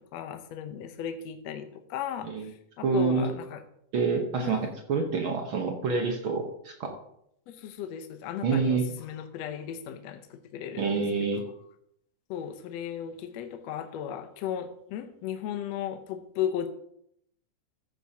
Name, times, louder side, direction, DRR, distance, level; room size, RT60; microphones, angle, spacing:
voice 1, 0.1-2.5 2.8-3.6 4.4-4.6 7.5-11.5 12.3-16.7, left 9 dB, 70° left, 7 dB, 1.6 m, -36 dB
voice 2, 2.8-3.3 3.9-6.9 8.4-8.9 10.8-11.4, right 4 dB, 65° right, 3 dB, 1.3 m, -27 dB
14.0 x 9.4 x 2.8 m, 0.73 s
omnidirectional pair, 3.8 m